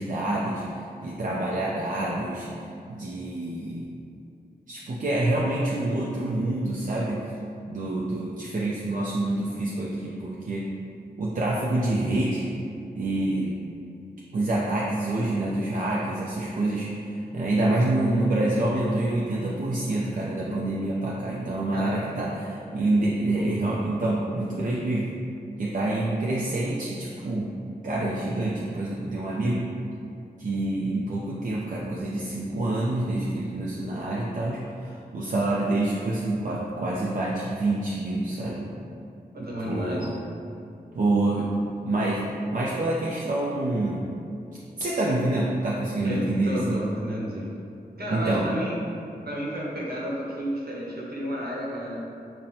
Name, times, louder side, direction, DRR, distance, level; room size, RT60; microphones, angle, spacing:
voice 1, 0.0-2.5 2.9-3.9 4.7-7.2 7.7-10.7 11.2-12.5 13.0-13.5 14.3-16.9 17.3-25.1 25.6-27.5 27.8-29.7 30.4-38.7 39.4-40.1 40.9-41.5 41.8-42.2 42.5-44.1 44.8-46.8 48.1-48.5, right 2 dB, 55° right, -5 dB, 0.4 m, -27 dB
voice 2, 21.7-22.3 39.3-40.1 46.0-47.5 48.0-48.8 49.2-52.0, equal, 70° right, -5 dB, 0.9 m, -32 dB
5.7 x 2.1 x 2.7 m, 2.6 s
wide cardioid pair, 65°, 17 cm